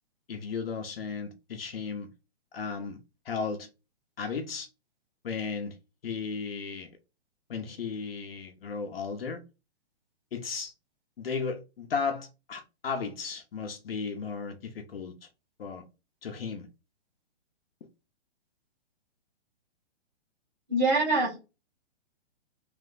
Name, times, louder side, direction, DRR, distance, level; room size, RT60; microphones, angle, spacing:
voice 1, 0.3-2.1 2.5-3.0 3.2-3.7 4.2-4.7 5.2-5.8 6.0-6.9 7.5-9.4 10.3-10.7 11.2-15.3 15.6-15.9 16.2-16.7, left 5 dB, 60° left, 0.8 m, -35 dB
voice 2, 20.7-21.4, right 2 dB, 20° right, 1.5 m, -24 dB
3.3 x 3.0 x 3.8 m
hypercardioid pair, 175°, 34 cm